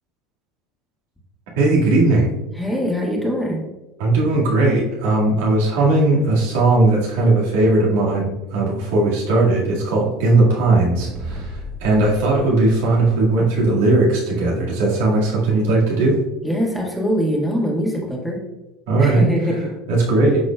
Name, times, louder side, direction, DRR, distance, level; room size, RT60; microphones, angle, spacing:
voice 1, 1.6-2.3 4.0-16.2 18.9-19.2 19.9-20.4, right 2 dB, 70° right, -4 dB, 1.9 m, -18 dB
voice 2, 2.6-3.6 16.4-18.4 19.0-19.7, equal, 5° left, -3 dB, 1.9 m, -22 dB
sound 1, 11.0-13.7, right 1 dB, 25° right, 1.1 m, -34 dB
11.5 x 4.1 x 2.3 m, 1.0 s
hypercardioid pair, 80°, 0 cm